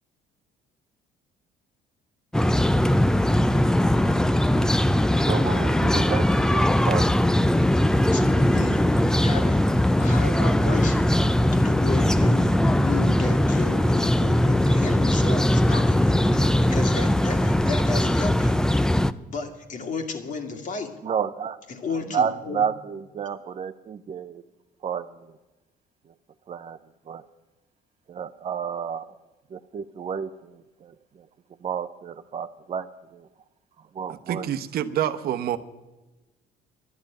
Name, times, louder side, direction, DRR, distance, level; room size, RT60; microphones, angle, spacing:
sound 1, 2.3-19.1, left 1 dB, 5° left, 0.4 m, -20 dB
voice 1, 5.3-7.4 21.0-21.6 21.9-24.4 24.8-25.1 26.5-26.8 27.1-27.2 28.1-29.1 29.5-30.5 30.8-30.9 31.6-33.3 33.9-34.5, right 7 dB, 40° right, 7 dB, 0.6 m, -30 dB
voice 2, 8.1-9.7 10.0-11.1 11.5-18.6 19.3-20.9 21.7-22.6, left 4 dB, 50° left, 5 dB, 2.2 m, -34 dB
voice 3, 34.1-35.6, right 10 dB, 65° right, 10 dB, 1.0 m, -27 dB
12.0 x 10.5 x 8.7 m, 1.1 s
cardioid pair, 110°, 17 cm